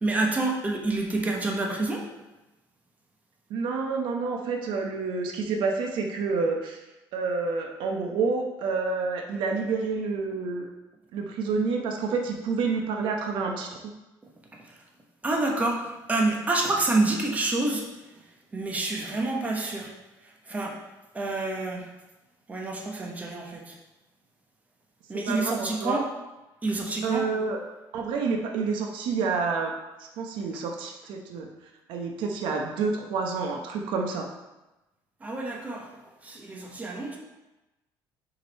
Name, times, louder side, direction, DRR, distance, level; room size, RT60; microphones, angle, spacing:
voice 1, 0.0-2.1 14.5-14.8 15.2-17.9 18.5-19.9 20.2-20.8 21.1-21.9 22.5-23.8 25.1-26.1 26.6-27.3 35.2-35.9 36.2-37.2, right 2 dB, 20° right, 0 dB, 1.0 m, -28 dB
voice 2, 3.5-6.8 7.1-10.7 11.1-13.9 25.1-26.0 27.0-27.6 27.9-29.7 30.0-31.5 31.9-34.3, right 4 dB, 75° right, 3 dB, 0.8 m, -28 dB
5.0 x 4.8 x 4.2 m, 1.0 s
cardioid pair, 130°, 8 cm